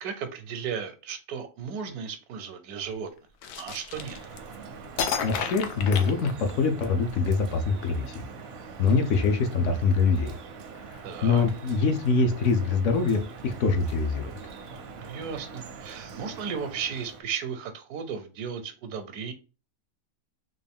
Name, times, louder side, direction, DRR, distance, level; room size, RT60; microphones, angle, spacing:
voice 1, 0.0-3.1 3.6-4.2 11.0-11.4 15.0-19.3, right 7 dB, 85° right, 1.1 m, -35 dB
sound 1, 3.4-4.6 5.0-6.8, left 6 dB, 85° left, 1.1 m, -32 dB
Drip, 3.9-17.2, right 5 dB, 60° right, 0.7 m, -43 dB
voice 2, 5.2-8.3 8.8-10.4 10.9-14.3, left 4 dB, 65° left, 0.8 m, -24 dB
3.7 x 2.5 x 3.4 m
omnidirectional pair, 1.6 m